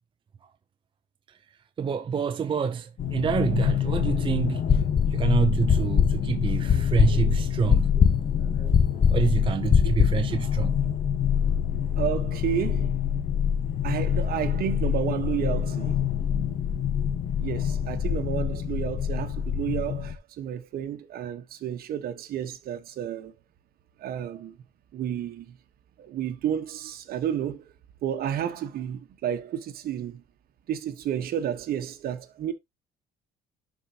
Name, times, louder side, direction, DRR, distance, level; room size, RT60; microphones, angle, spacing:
voice 1, 1.8-4.8 5.1-10.8, right 6 dB, 30° right, 0.6 m, -27 dB
sound 1, 3.0-20.2, left 8 dB, 55° left, 1.3 m, -26 dB
sound 2, 4.7-5.3 5.7-10.3, left 6 dB, 30° left, 0.6 m, -21 dB
voice 2, 12.0-12.9 13.8-16.0 17.4-23.3 24.0-24.5 24.9-25.4 26.0-27.6 28.0-30.2 30.7-32.5, right 10 dB, 60° right, 1.3 m, -31 dB
11.0 x 4.6 x 2.9 m
cardioid pair, 110°, 17 cm